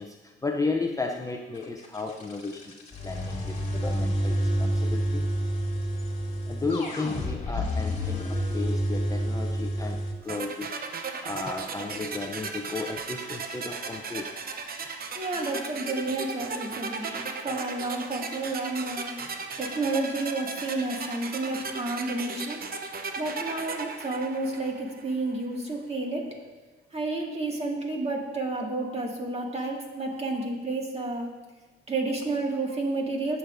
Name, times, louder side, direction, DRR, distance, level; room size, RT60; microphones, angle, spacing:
voice 1, 0.0-5.3 6.5-10.8 11.2-14.4, left 3 dB, 15° left, 3 dB, 0.5 m, -34 dB
sound 1, 1.5-10.1, equal, 35° left, 1.9 m, -29 dB
sound 2, 10.3-25.2, right 4 dB, 50° right, 0.8 m, -36 dB
voice 2, 15.1-22.6 23.2-26.2 26.9-31.3 31.9-33.4, right 2 dB, 30° right, 0 dB, 2.0 m, -31 dB
15.0 x 6.9 x 2.6 m, 1.3 s
cardioid pair, 90°, 20 cm